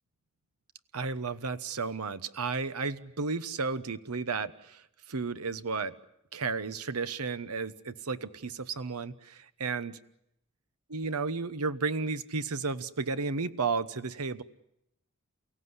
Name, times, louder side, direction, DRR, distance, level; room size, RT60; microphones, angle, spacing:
voice 1, 0.9-5.9 6.3-10.0 10.9-14.4, right 4 dB, 85° right, 13 dB, 1.1 m, -33 dB
29.5 x 17.0 x 9.7 m, 0.80 s
head